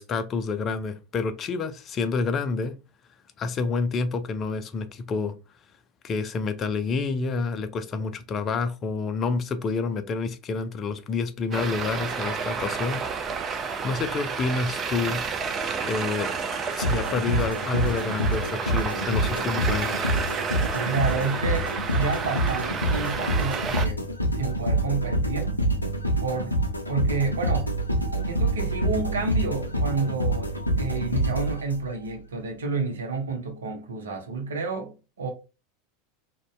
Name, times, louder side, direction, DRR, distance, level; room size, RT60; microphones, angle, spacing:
voice 1, 0.0-2.7 3.4-5.3 6.0-13.0 13.8-15.2 15.9-16.3 16.7-20.1, left 4 dB, 30° left, 0.4 m, -28 dB
Traffic noise roadway noise, 11.5-23.9, right 5 dB, 30° right, 0.5 m, -30 dB
sound 1, 16.8-32.1, right 1 dB, 90° left, 0.5 m, -26 dB
voice 2, 20.7-24.1 24.3-25.5 26.2-26.6 26.9-27.7 28.2-35.3, right 4 dB, 70° right, 0.6 m, -30 dB
2.6 x 2.2 x 3.2 m
figure-of-eight pair, 80°, 0 cm